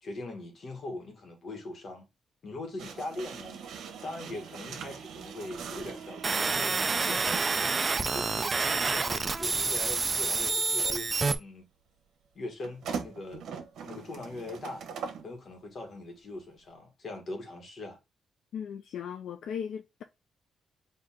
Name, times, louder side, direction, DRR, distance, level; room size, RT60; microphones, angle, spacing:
voice 1, 0.0-2.1 2.4-3.6 4.0-6.8 7.0-7.8 8.1-11.1 11.4-11.7 12.3-13.6 13.8-14.9 15.2-18.0, left 2 dB, 45° left, 1.5 m, -41 dB
sound 1, 2.8-7.5 8.6-8.8 12.6-15.3, right 6 dB, 90° right, 1.0 m, -41 dB
sound 2, 6.2-11.3, right 4 dB, 25° right, 0.4 m, -28 dB
voice 2, 18.5-20.0, left 8 dB, 75° left, 0.4 m, -37 dB
4.6 x 2.8 x 3.5 m
cardioid pair, 145°, 0 cm